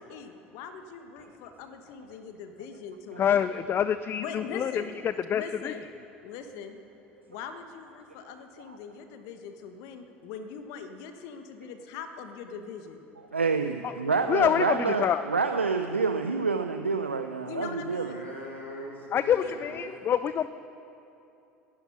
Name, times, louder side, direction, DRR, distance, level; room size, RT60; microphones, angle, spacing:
voice 1, 0.1-3.6 4.2-4.9 5.3-5.9 6.2-6.8 7.3-13.0 17.5-18.3 19.4-19.5, left 6 dB, 60° left, 7 dB, 1.1 m, -41 dB
voice 2, 3.2-4.8 5.3-5.7 13.8-13.9 14.3-15.2 19.1-20.5, left 9 dB, 35° left, 14 dB, 0.5 m, -26 dB
voice 3, 13.3-18.1, right 4 dB, 90° right, 7 dB, 0.5 m, -28 dB
voice 4, 18.0-20.0, left 1 dB, 85° left, -2 dB, 2.1 m, -41 dB
19.5 x 11.5 x 5.6 m, 2.7 s
figure-of-eight pair, 65°, 6 cm